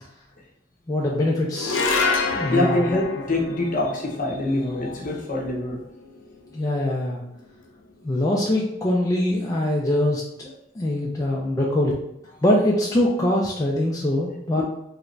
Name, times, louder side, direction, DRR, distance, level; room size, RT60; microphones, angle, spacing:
voice 1, 0.9-1.9 2.4-2.9 6.5-7.2 8.0-11.9 12.4-14.6, left 1 dB, 20° left, -3 dB, 0.4 m, -23 dB
sound 1, 1.6-8.0, left 4 dB, 85° left, 0.5 m, -29 dB
voice 2, 2.3-5.8 14.5-14.6, left 1 dB, 45° left, -1 dB, 0.7 m, -25 dB
3.3 x 2.5 x 3.1 m, 0.80 s
head